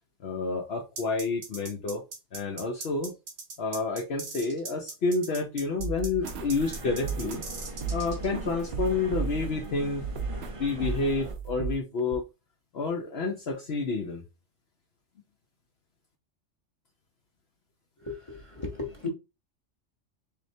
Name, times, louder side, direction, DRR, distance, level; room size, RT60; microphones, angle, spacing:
voice 1, 0.2-2.0 2.3-3.1 3.6-7.4 7.9-10.0 10.6-12.2 12.7-14.2, left 3 dB, 60° left, 0.9 m, -29 dB
sound 1, 1.0-8.3, right 4 dB, 80° right, 1.5 m, -40 dB
sound 2, 5.8-9.6 10.0-10.6 10.8-11.7 12.1-12.2, right 6 dB, 65° right, 0.8 m, -34 dB
sound 3, 6.2-11.3, right 2 dB, 30° right, 0.7 m, -40 dB
voice 2, 18.1-19.1, left 4 dB, 30° left, 0.8 m, -36 dB
4.3 x 3.1 x 2.7 m
omnidirectional pair, 1.3 m